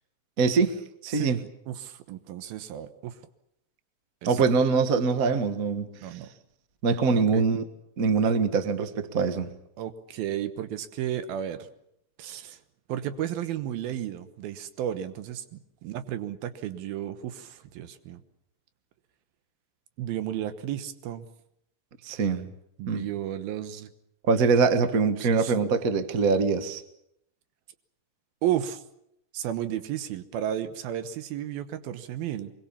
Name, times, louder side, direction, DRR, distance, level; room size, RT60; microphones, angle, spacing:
voice 1, 0.4-0.8 1.0-1.4 4.2-5.9 6.8-7.6 8.0-9.5 22.0-22.5 22.9-23.0 24.3-26.8, right 4 dB, 55° right, 9 dB, 0.9 m, -23 dB
voice 2, 1.1-3.2 4.2-4.4 6.0-6.3 7.2-7.4 9.8-11.7 12.2-12.6 12.9-18.2 20.0-21.3 22.8-23.9 25.2-25.5 28.4-28.8 29.3-32.5, right 11 dB, 85° right, 10 dB, 3.1 m, -33 dB
24.0 x 22.5 x 7.2 m, 0.76 s
omnidirectional pair, 4.1 m